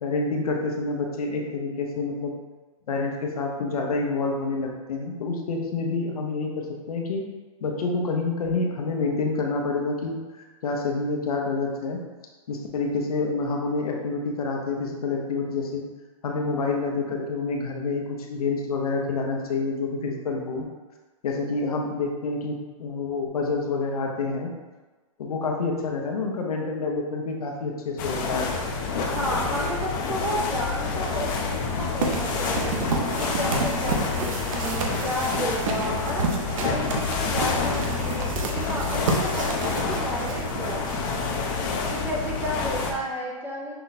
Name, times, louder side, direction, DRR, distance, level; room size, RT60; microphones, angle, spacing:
voice 1, 0.0-2.3 2.9-7.2 7.6-12.0 12.5-15.8 16.2-20.7 21.2-24.5 25.2-28.5, left 3 dB, 90° left, 1 dB, 0.9 m, -28 dB
sound 1, 28.0-42.9, left 4 dB, 35° left, 0.6 m, -28 dB
voice 2, 29.0-32.8 33.2-36.3 36.6-40.9 41.9-43.7, equal, 10° right, -2 dB, 0.4 m, -32 dB
sound 2, 32.0-41.5, right 3 dB, 65° right, 0.8 m, -30 dB
5.7 x 2.2 x 4.1 m, 1.3 s
hypercardioid pair, 155°, 18 cm